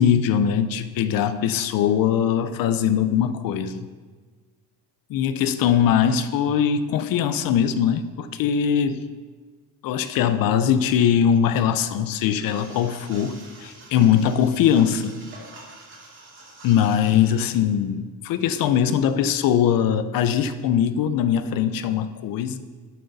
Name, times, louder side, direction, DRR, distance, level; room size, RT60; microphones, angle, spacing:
voice 1, 0.0-3.9 5.1-9.0 9.8-15.2 16.6-22.6, left 8 dB, 60° left, 13 dB, 0.6 m, -21 dB
sound 1, 12.4-17.6, right 2 dB, 30° right, 2.5 m, -46 dB
12.0 x 7.8 x 4.1 m, 1.4 s
cardioid pair, 175°, 39 cm